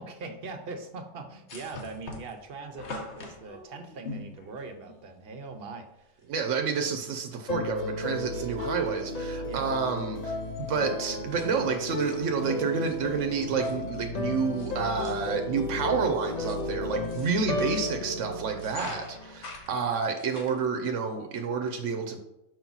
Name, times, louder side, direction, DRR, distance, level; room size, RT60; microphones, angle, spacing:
voice 1, 0.0-6.2 9.4-9.7, right 3 dB, 55° right, 6 dB, 1.0 m, -41 dB
sound 1, 1.5-5.1 6.2-6.3 6.6-6.7 7.4-7.8 8.1-8.9 9.3-9.5 9.8-14.8 15.0-15.5 16.1-18.0 18.5-20.6, left 2 dB, 65° left, 1.3 m, -45 dB
voice 2, 6.3-22.2, right 5 dB, 85° right, 4 dB, 1.0 m, -29 dB
sound 2, 7.5-19.6, left 2 dB, 45° left, 0.6 m, -34 dB
5.9 x 4.8 x 4.0 m, 0.87 s
omnidirectional pair, 1.2 m